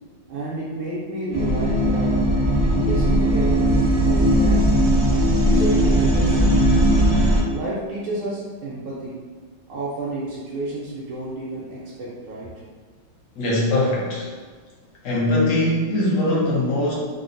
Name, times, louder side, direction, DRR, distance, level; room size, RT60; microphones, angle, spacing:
voice 1, 0.3-2.2 2.7-4.9 5.4-6.6 7.4-9.3 9.7-12.5, right 2 dB, 80° right, -7 dB, 1.5 m, -30 dB
sound 1, 1.3-7.4, equal, 35° right, 0.4 m, -18 dB
voice 2, 13.4-14.3 15.0-16.9, left 1 dB, 70° left, -5 dB, 0.8 m, -21 dB
3.8 x 2.1 x 2.5 m, 1.5 s
omnidirectional pair, 2.3 m